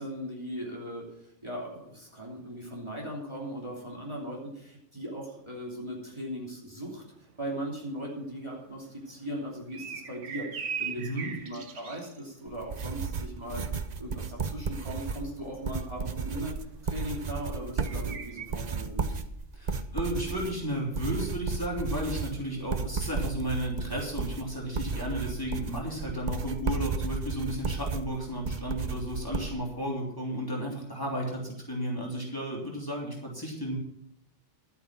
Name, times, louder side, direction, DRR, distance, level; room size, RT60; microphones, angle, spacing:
voice 1, 0.0-7.0 7.4-13.6 14.0-16.6 16.8-19.2, equal, 25° right, -3 dB, 3.1 m, -38 dB
sound 1, 7.1-18.5, right 7 dB, 80° right, 1.5 m, -41 dB
voice 2, 11.0-11.3 19.5-33.8, equal, 15° left, -3 dB, 3.1 m, -33 dB
sound 2, 12.5-29.5, right 5 dB, 40° right, 0.8 m, -34 dB
12.0 x 8.7 x 6.1 m, 0.75 s
omnidirectional pair, 1.2 m